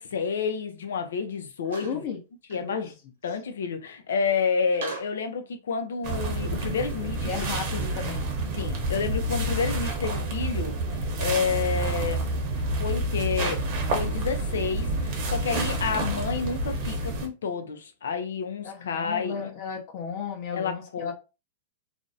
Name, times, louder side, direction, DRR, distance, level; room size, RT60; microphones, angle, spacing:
voice 1, 0.0-1.9 2.5-2.8 3.2-7.3 8.5-10.7 11.2-12.3 12.8-19.5 20.5-21.1, left 5 dB, 85° left, 0.5 m, -29 dB
sound 1, 1.6-2.0 2.5-2.6 4.7-5.2, right 3 dB, 75° right, 0.9 m, -37 dB
voice 2, 1.8-2.2 2.5-2.9 7.2-8.3 18.6-21.1, left 6 dB, 50° left, 0.7 m, -34 dB
sound 2, 6.0-17.3, right 2 dB, 45° right, 0.8 m, -29 dB
2.5 x 2.0 x 2.7 m
hypercardioid pair, 135°, 0 cm